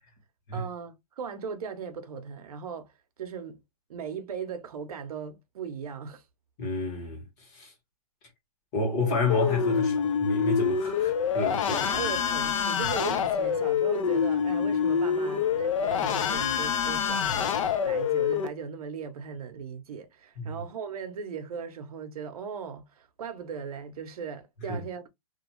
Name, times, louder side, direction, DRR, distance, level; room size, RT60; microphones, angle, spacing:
voice 1, 0.5-2.9 3.2-3.6 3.9-6.2 11.7-25.1, right 6 dB, 75° right, 0.7 m, -38 dB
voice 2, 6.6-7.7 8.7-11.8 20.4-20.5 24.7-24.8, left 2 dB, 30° left, 1.1 m, -30 dB
sound 1, 9.3-18.5, left 7 dB, 55° left, 0.4 m, -26 dB
2.4 x 2.3 x 2.9 m
hypercardioid pair, 165°, 19 cm